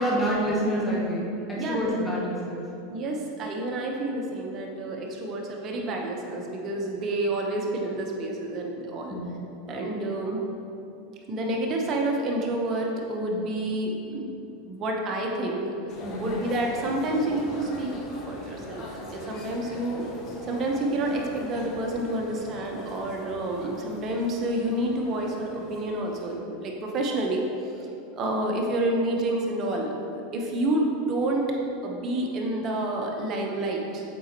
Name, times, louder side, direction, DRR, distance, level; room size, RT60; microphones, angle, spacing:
voice 1, 0.0-2.6 9.1-9.3 16.0-16.3, equal, 15° left, -5 dB, 1.1 m, -27 dB
voice 2, 1.6-2.0 2.9-9.2 9.7-10.4 11.3-14.3 14.7-15.7 16.2-17.9 18.3-20.1 20.4-27.7 28.2-29.9 30.3-31.5 31.8-34.0, right 1 dB, 35° right, 0 dB, 1.0 m, -29 dB
sound 1, 15.9-26.4, left 2 dB, 40° left, 0.9 m, -41 dB
7.3 x 5.1 x 3.0 m, 2.8 s
hypercardioid pair, 115°, 0 cm